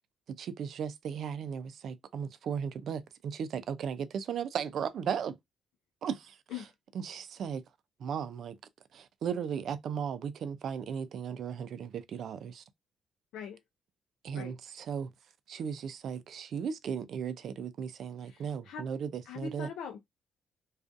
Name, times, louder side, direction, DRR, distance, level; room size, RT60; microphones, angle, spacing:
voice 1, 0.4-5.3 6.0-6.7 6.9-7.6 8.0-8.6 8.9-12.6 14.2-15.1 15.5-19.7, right 7 dB, 65° right, 0.4 m, -36 dB
voice 2, 18.2-18.9 19.3-20.0, left 6 dB, 85° left, 0.4 m, -42 dB
2.5 x 2.3 x 2.4 m
cardioid pair, 90°, 0 cm